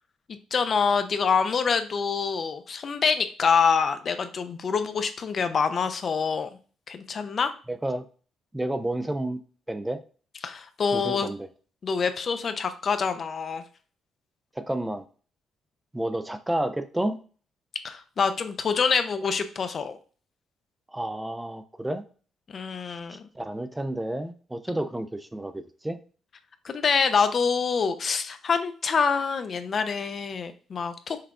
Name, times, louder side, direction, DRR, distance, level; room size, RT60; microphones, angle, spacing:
voice 1, 0.3-6.5 6.9-7.5 10.4-11.3 11.8-13.6 17.8-20.0 22.5-23.3 26.6-31.2, left 5 dB, 50° left, 9 dB, 0.5 m, -26 dB
voice 2, 7.7-8.1 8.5-9.4 9.7-10.0 10.9-11.5 14.6-15.1 15.9-17.2 20.9-22.0 23.1-26.0, right 1 dB, 10° right, 10 dB, 0.4 m, -30 dB
5.7 x 2.3 x 3.6 m, 0.39 s
cardioid pair, 90°, 0 cm